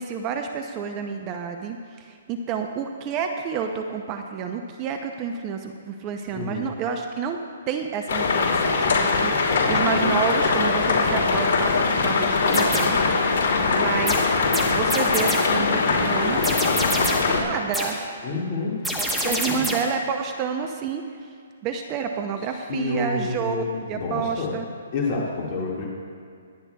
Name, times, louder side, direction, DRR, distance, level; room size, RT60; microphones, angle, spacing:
voice 1, 0.0-7.4 7.7-13.0 13.3-14.3 14.6-16.5 17.3-18.0 19.1-21.3 21.6-24.6, right 6 dB, 25° right, 5 dB, 0.6 m, -29 dB
voice 2, 6.3-6.7 9.3-9.7 18.2-19.6 22.7-24.5 24.9-25.9, left 3 dB, 35° left, -4 dB, 1.9 m, -29 dB
sound 1, 8.1-17.4, left 4 dB, 55° left, 3.0 m, -21 dB
sound 2, 12.5-13.1 14.1-15.6 16.4-17.4 17.7-18.1 18.8-20.0, equal, 5° right, 1.1 m, -28 dB
25.0 x 9.7 x 2.3 m, 2.3 s
hypercardioid pair, 155°, 0 cm